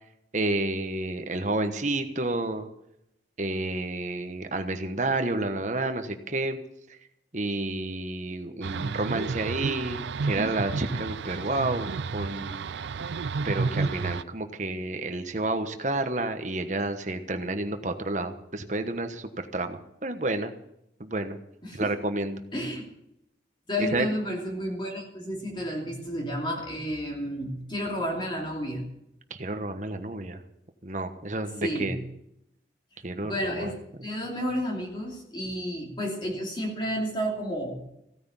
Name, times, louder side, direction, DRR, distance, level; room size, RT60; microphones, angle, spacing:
voice 1, 0.3-2.7 3.4-6.6 7.3-12.7 13.4-20.5 21.0-21.4 21.7-22.4 23.8-24.1 29.3-30.4 30.8-32.0 33.0-33.7 34.0-34.1, right 2 dB, 40° right, 7 dB, 1.2 m, -30 dB
sound 1, 8.6-14.2, right 4 dB, 75° right, 0.4 m, -31 dB
voice 2, 22.5-22.8 23.7-28.8 31.6-32.0 33.2-37.8, equal, 25° left, -1 dB, 2.9 m, -31 dB
16.0 x 9.6 x 7.2 m, 0.81 s
head